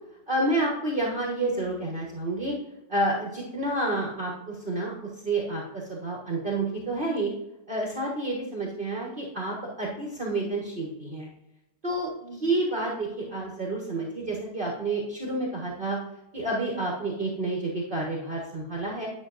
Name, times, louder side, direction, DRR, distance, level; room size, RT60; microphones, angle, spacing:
voice 1, 0.3-2.5 2.9-7.3 7.7-11.3 11.8-16.0 16.3-19.1, right 2 dB, 35° right, -3 dB, 1.4 m, -29 dB
9.9 x 6.4 x 2.5 m, 0.89 s
omnidirectional pair, 1.7 m